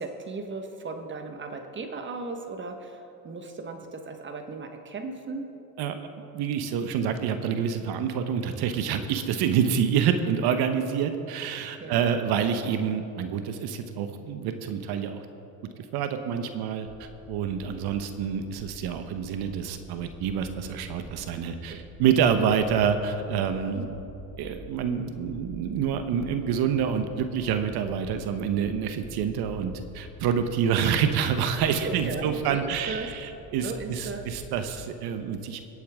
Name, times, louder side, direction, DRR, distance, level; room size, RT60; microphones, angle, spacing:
voice 1, 0.0-5.5 11.8-12.0 21.5-21.8 23.7-24.1 30.7-30.8 31.8-33.1 33.6-34.2, right 3 dB, 25° right, 5 dB, 1.3 m, -36 dB
voice 2, 6.3-15.2 15.8-23.8 24.4-35.6, right 7 dB, 55° right, 8 dB, 1.1 m, -27 dB
sound 1, 16.9-34.8, left 2 dB, 15° left, 1.0 m, -47 dB
24.5 x 8.5 x 3.6 m, 2.9 s
supercardioid pair, 105°, 45 cm